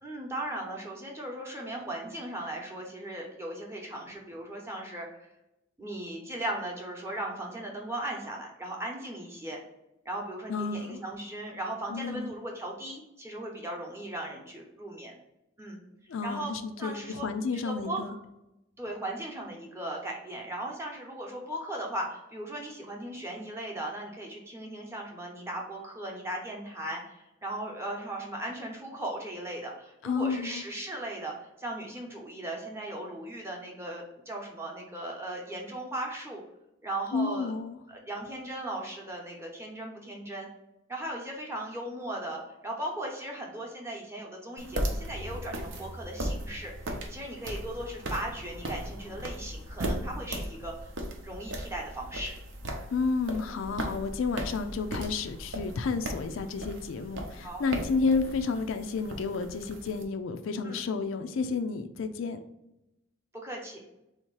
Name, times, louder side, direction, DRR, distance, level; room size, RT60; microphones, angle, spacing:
voice 1, 0.0-5.2 5.8-9.6 10.0-15.2 15.6-15.8 16.2-16.5 16.8-17.3 17.5-18.0 18.8-36.4 36.8-37.5 37.9-40.5 40.9-46.7 47.1-50.9 51.2-52.4 57.4-57.6 60.6-60.9 63.3-63.8, right 1 dB, 15° right, -1 dB, 0.8 m, -37 dB
voice 2, 10.5-11.0 11.9-12.3 16.1-18.1 30.0-30.6 37.1-37.8 52.9-62.4, left 4 dB, 75° left, 8 dB, 0.4 m, -31 dB
sound 1, 44.6-60.0, right 1 dB, 65° right, 0.7 m, -37 dB
3.6 x 2.8 x 4.6 m, 0.90 s
head